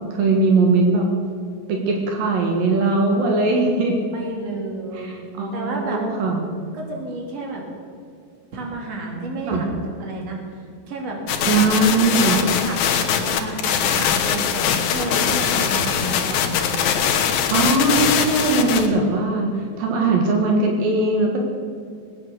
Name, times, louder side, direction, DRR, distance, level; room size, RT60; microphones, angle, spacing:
voice 1, 0.1-1.1 1.7-4.0 4.9-6.5 9.4-9.6 11.4-12.4 17.5-19.5 19.8-21.4, right 3 dB, 75° right, 1 dB, 3.3 m, -20 dB
voice 2, 4.1-5.2 5.5-6.0 6.7-7.6 8.5-16.8, right 2 dB, 45° right, 0 dB, 3.5 m, -31 dB
sound 1, 11.3-18.9, left 8 dB, 85° left, 3.1 m, -21 dB
19.5 x 9.4 x 6.8 m, 2.3 s
omnidirectional pair, 4.2 m